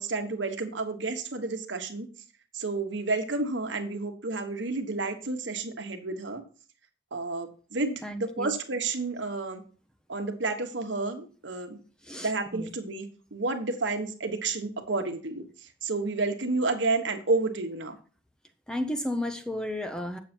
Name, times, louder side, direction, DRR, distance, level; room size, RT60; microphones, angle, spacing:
voice 1, 0.0-2.1 2.5-6.4 7.1-9.6 10.1-11.8 12.2-15.4 15.8-17.9, right 3 dB, 70° right, 6 dB, 1.3 m, -30 dB
voice 2, 8.0-8.5 12.1-12.7 18.7-20.2, left 1 dB, 5° left, 6 dB, 0.7 m, -33 dB
8.4 x 7.0 x 4.4 m, 0.39 s
head